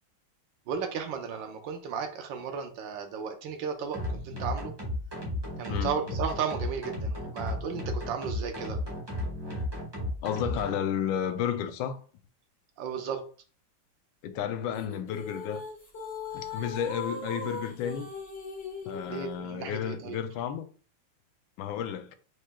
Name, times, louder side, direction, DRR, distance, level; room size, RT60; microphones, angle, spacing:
voice 1, 0.7-4.7 5.6-8.8 12.8-13.2 19.1-20.2, right 6 dB, 75° right, 1.5 m, -34 dB
sound 1, 3.9-10.7, left 1 dB, 15° right, 1.1 m, -34 dB
voice 2, 10.2-12.0 14.2-15.6 16.3-18.1 18.8-20.7 21.6-22.2, left 9 dB, 90° left, 1.4 m, -32 dB
sound 2, 14.7-19.3, left 4 dB, 35° left, 1.5 m, -39 dB
4.9 x 4.3 x 2.2 m
omnidirectional pair, 2.1 m